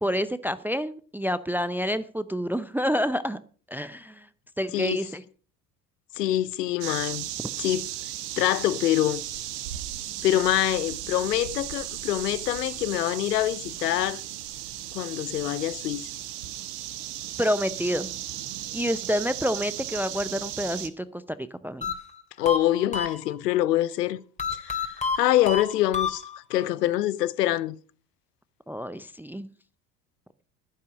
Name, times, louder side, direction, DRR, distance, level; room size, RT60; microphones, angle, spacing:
voice 1, 0.0-3.4 3.7-4.3 4.6-5.2 17.4-18.1 18.7-21.9 28.7-29.5, equal, 5° right, 0.6 m, -28 dB
voice 2, 4.7-5.0 6.1-7.3 7.6-7.9 8.4-9.2 10.2-14.2 14.9-16.1 22.4-24.2 24.5-27.8, left 14 dB, 85° left, 0.8 m, -25 dB
sound 1, 6.8-20.9, right 13 dB, 75° right, 1.5 m, -36 dB
sound 2, 21.8-23.6 24.4-26.7, left 5 dB, 15° left, 2.5 m, -30 dB
11.5 x 9.9 x 6.2 m
hypercardioid pair, 70°, 47 cm